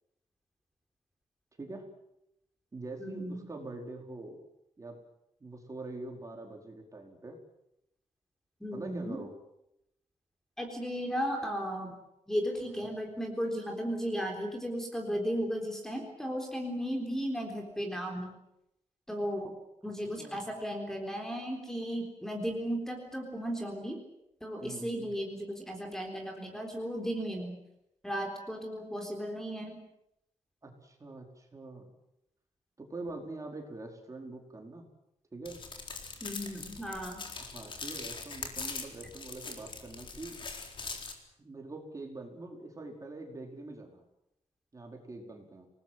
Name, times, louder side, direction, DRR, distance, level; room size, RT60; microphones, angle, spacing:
voice 1, 1.6-1.9 2.7-4.4 4.8-5.0 5.4-7.4 8.7-9.3 12.8-12.9 20.2-20.5 24.6-25.1 30.6-31.9 32.8-34.9 35.3-35.6 37.4-40.4 41.4-44.0 44.7-45.7, right 2 dB, 25° right, 2 dB, 4.8 m, -44 dB
voice 2, 3.0-3.4 8.6-9.2 10.6-12.0 12.3-18.3 19.1-19.6 19.8-24.0 24.4-27.5 28.0-29.8 36.2-37.2, equal, 5° left, 2 dB, 3.9 m, -35 dB
sound 1, 35.5-41.1, left 4 dB, 40° left, 4.0 m, -42 dB
28.0 x 19.5 x 7.8 m, 0.83 s
wide cardioid pair, 155°, 12 cm